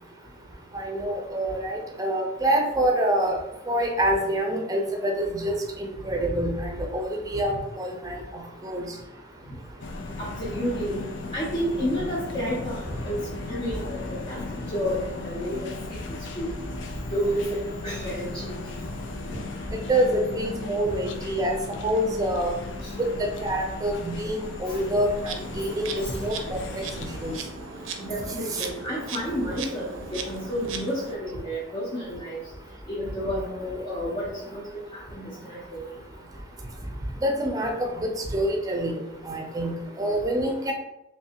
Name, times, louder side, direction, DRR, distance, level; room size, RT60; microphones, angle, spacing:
voice 1, 0.7-3.4 3.7-8.8 19.9-20.1 20.4-21.5 21.8-22.5 23.0-23.1 23.4-26.6 27.2-27.3 37.2-39.0 39.3-40.7, right 1 dB, 20° right, 1 dB, 0.5 m, -26 dB
sound 1, 9.8-27.4, left 3 dB, 70° left, 0.4 m, -37 dB
voice 2, 10.2-11.0 11.3-12.8 13.0-14.0 14.3-14.4 14.7-15.0 15.2-16.0 16.4-16.6 17.1-18.5 19.3-19.4 28.1-32.4 32.9-34.6 35.1-35.9, equal, 35° left, -6 dB, 0.7 m, -30 dB
Insect, 25.1-31.1, right 4 dB, 90° right, 0.5 m, -38 dB
3.2 x 3.2 x 2.8 m, 0.90 s
head